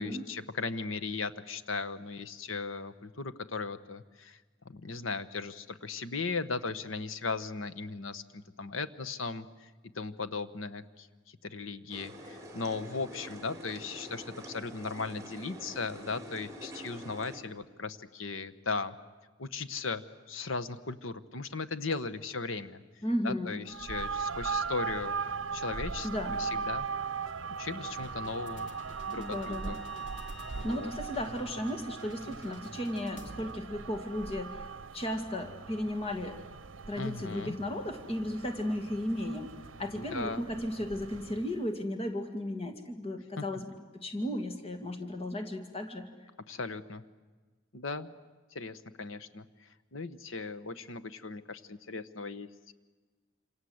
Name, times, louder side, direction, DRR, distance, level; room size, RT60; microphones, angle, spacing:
voice 1, 0.0-4.4 4.6-9.7 9.9-11.1 11.4-18.9 19.4-20.0 20.3-22.8 23.2-25.1 25.5-26.9 27.6-28.7 29.1-29.8 30.5-30.9 37.0-37.6 40.0-40.4 43.4-43.5 46.5-47.0 47.7-48.1 48.5-49.4 49.9-52.7, left 4 dB, 90° left, 13 dB, 1.2 m, -37 dB
sound 1, 11.9-17.4, equal, 15° right, 3.5 m, -46 dB
voice 2, 23.0-23.6 26.0-26.4 29.1-29.8 30.6-34.7 34.9-36.4 36.9-46.1, left 1 dB, 30° left, 6 dB, 2.3 m, -35 dB
sound 2, 23.7-41.6, right 5 dB, 75° right, 0.8 m, -39 dB
sound 3, 27.8-33.5, left 2 dB, 65° left, 2.2 m, -51 dB
28.0 x 27.0 x 8.0 m, 1.3 s
head